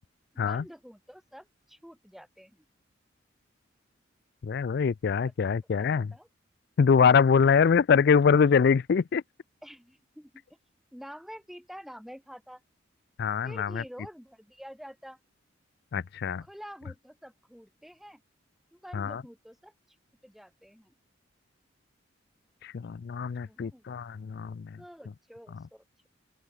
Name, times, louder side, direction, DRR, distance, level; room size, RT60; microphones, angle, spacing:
voice 1, 0.3-2.6 5.2-6.3 7.4-7.6 9.6-10.4 10.9-12.6 13.4-15.2 16.4-18.2 18.7-19.7 20.2-20.9 23.4-23.9 24.8-26.1, equal, ahead, 2.5 m, -48 dB
voice 2, 4.4-6.1 6.8-9.2 13.2-13.8 15.9-16.4 18.9-19.2 22.6-24.7, left 6 dB, 55° left, 0.4 m, -24 dB
open air
head